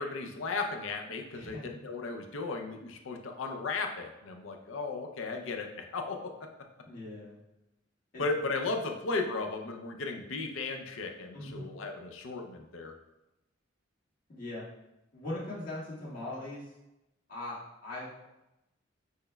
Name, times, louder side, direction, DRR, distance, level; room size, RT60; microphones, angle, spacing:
voice 1, 0.0-6.4 8.2-12.9, left 3 dB, 75° left, 4 dB, 0.5 m, -35 dB
voice 2, 1.3-1.6 6.8-7.4 8.1-8.2 11.3-11.7 14.3-14.6 15.1-16.7 17.3-17.6 17.8-18.3, left 1 dB, 45° left, -7 dB, 1.5 m, -40 dB
6.3 x 3.3 x 2.2 m, 0.93 s
head